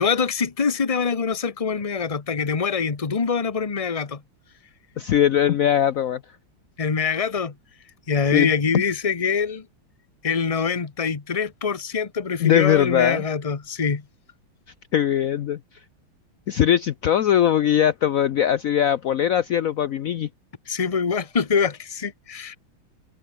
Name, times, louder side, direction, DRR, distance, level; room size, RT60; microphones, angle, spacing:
voice 1, 0.0-4.2 6.8-7.5 8.1-9.6 10.2-14.0 20.7-22.5, left 5 dB, 25° left, 0.9 m, -24 dB
voice 2, 5.0-6.2 8.3-8.5 12.4-13.2 14.9-15.6 16.5-20.3, left 10 dB, 75° left, 0.7 m, -20 dB
omnidirectional pair, 2.3 m